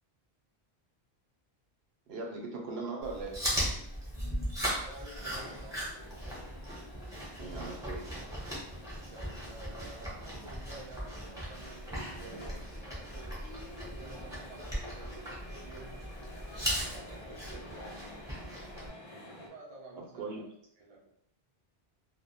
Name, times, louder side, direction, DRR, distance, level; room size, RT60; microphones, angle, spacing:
voice 1, 2.1-3.4 7.4-8.1 20.2-20.4, right 3 dB, 75° right, 0 dB, 0.8 m, -39 dB
Chewing mastication, 3.0-18.9, equal, 5° right, 0.6 m, -38 dB
voice 2, 4.8-6.4 9.1-16.1 16.9-18.4 19.3-20.5 20.8-21.1, right 2 dB, 50° right, -2 dB, 0.5 m, -51 dB
sound 1, 5.1-19.5, left 1 dB, 50° left, 0.4 m, -50 dB
2.1 x 2.1 x 2.7 m, 0.68 s
omnidirectional pair, 1.1 m